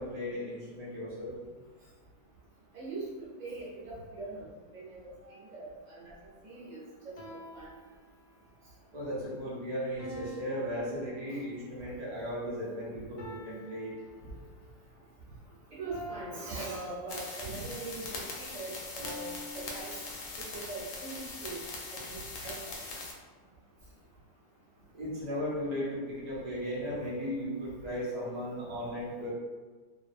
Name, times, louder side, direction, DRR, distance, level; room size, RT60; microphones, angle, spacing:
voice 1, 0.0-1.3 8.9-13.9 24.9-29.3, equal, 80° right, -7 dB, 0.3 m, -36 dB
voice 2, 2.7-6.1 6.4-7.1 7.5-7.7 11.3-11.4 15.7-20.2 20.5-21.6 21.9-22.5 22.9-23.0, right 3 dB, 40° right, -8 dB, 0.7 m, -42 dB
sound 1, 5.2-5.6 7.2-8.6 10.0-11.8 13.2-14.8 15.9-17.6 19.0-20.6, right 1 dB, 85° left, 1.1 m, -48 dB
sound 2, 17.1-23.1, left 3 dB, 70° left, 0.8 m, -41 dB
2.5 x 2.1 x 2.6 m, 1.4 s
omnidirectional pair, 1.6 m